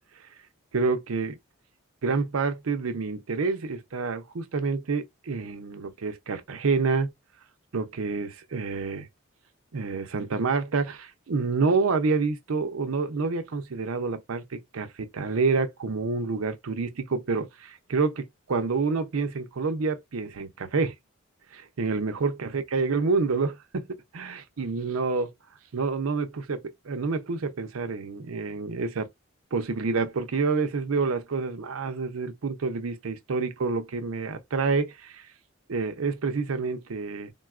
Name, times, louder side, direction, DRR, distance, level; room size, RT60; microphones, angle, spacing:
voice 1, 0.7-1.4 2.0-7.1 7.7-9.1 9.7-20.9 21.5-23.9 24.1-25.3 25.7-29.1 29.5-35.3 35.7-37.3, right 4 dB, 80° right, 0.6 m, -28 dB
3.7 x 2.2 x 2.4 m
head